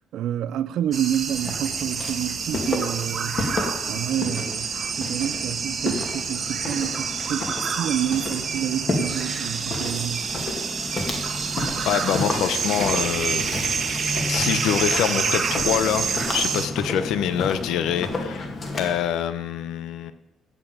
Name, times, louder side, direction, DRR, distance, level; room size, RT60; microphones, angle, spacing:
voice 1, 0.1-3.5 3.9-10.3, right 10 dB, 65° right, 0.5 m, -28 dB
sound 1, 0.9-16.7, right 5 dB, 30° right, 1.1 m, -28 dB
Walk footsteps, 1.3-19.0, left 2 dB, 35° left, 2.2 m, -31 dB
voice 2, 11.9-13.5 14.3-16.1 16.3-18.5 18.8-20.1, left 9 dB, 85° left, 0.9 m, -25 dB
16.0 x 5.5 x 8.9 m
cardioid pair, 175°, 0 cm